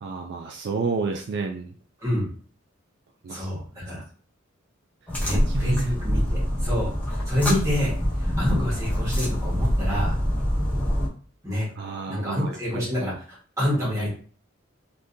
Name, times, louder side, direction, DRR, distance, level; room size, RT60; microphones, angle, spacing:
voice 1, 0.0-1.7 3.2-3.5 5.2-5.9 11.8-12.5, right 4 dB, 55° right, 3 dB, 0.3 m, -30 dB
voice 2, 3.3-4.0 5.2-7.9 8.2-10.1 11.4-11.7 12.1-13.2 13.6-14.1, left 1 dB, 15° right, -6 dB, 1.4 m, -27 dB
sound 1, 5.1-11.1, equal, 5° left, 0.8 m, -25 dB
3.6 x 2.6 x 2.6 m, 0.43 s
head